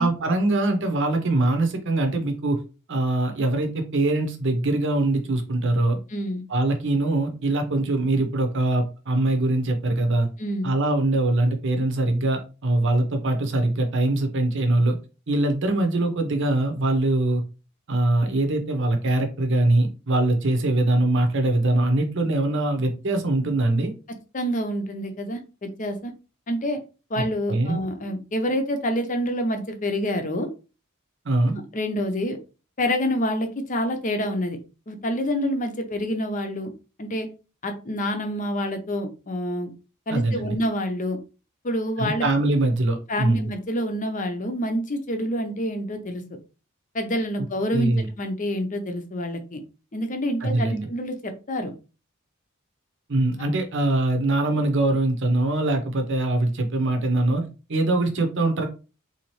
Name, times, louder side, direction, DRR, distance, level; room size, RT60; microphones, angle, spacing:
voice 1, 0.0-2.6 2.9-6.0 6.5-10.3 10.6-15.0 15.3-17.4 17.9-23.9 27.5-27.8 31.2-31.5 40.1-40.6 42.0-43.5 47.7-48.1 50.4-50.9 53.1-57.4 57.7-58.7, right 2 dB, 60° right, 5 dB, 0.8 m, -22 dB
voice 2, 6.1-6.4 10.4-10.7 24.3-26.1 26.5-26.8 27.1-30.5 31.4-32.4 32.8-34.6 34.9-36.7 37.0-37.3 37.6-39.7 40.1-41.2 41.6-42.3 43.1-46.2 46.9-49.6 49.9-51.7, equal, 35° left, 6 dB, 0.7 m, -27 dB
3.9 x 2.8 x 3.1 m, 0.33 s
head